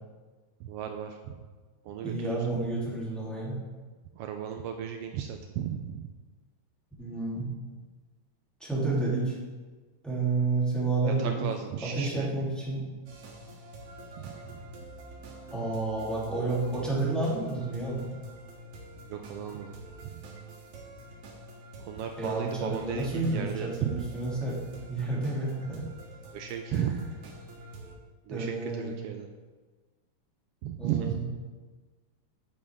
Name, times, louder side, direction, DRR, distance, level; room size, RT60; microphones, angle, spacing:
voice 1, 0.6-1.4 1.8-2.5 4.1-6.1 11.1-12.3 14.2-14.5 19.0-19.7 20.0-20.2 21.8-24.0 26.3-27.0 28.3-29.3 30.6-31.2, right 9 dB, 85° right, 5 dB, 1.3 m, -35 dB
voice 2, 2.0-3.6 7.0-7.5 8.6-9.4 10.0-11.4 11.8-12.8 15.5-18.1 22.2-24.6 24.9-25.8 26.7-27.0 28.3-29.0 30.8-31.2, right 3 dB, ahead, -8 dB, 2.8 m, -30 dB
sound 1, 13.1-27.9, right 1 dB, 60° right, 2.3 m, -47 dB
9.5 x 9.3 x 3.6 m, 1.4 s
omnidirectional pair, 3.3 m